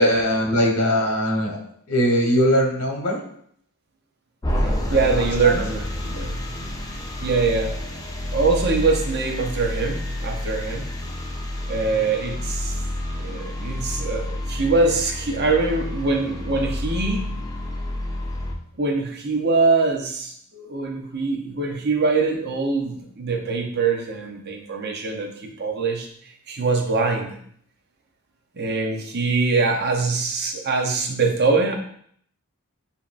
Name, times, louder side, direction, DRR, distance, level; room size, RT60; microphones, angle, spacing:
voice 1, 0.0-1.6 1.9-3.2 4.9-5.6, equal, 75° left, 1 dB, 1.2 m, -21 dB
sound 1, 4.4-18.5, left 1 dB, 15° left, 0.4 m, -29 dB
voice 2, 4.6-6.4 7.2-7.8 8.3-10.9 11.7-12.8 13.1-17.3 18.7-26.1 26.5-27.4 28.5-31.7, right 4 dB, 45° right, 3 dB, 0.6 m, -23 dB
7.1 x 2.8 x 2.4 m, 0.64 s
head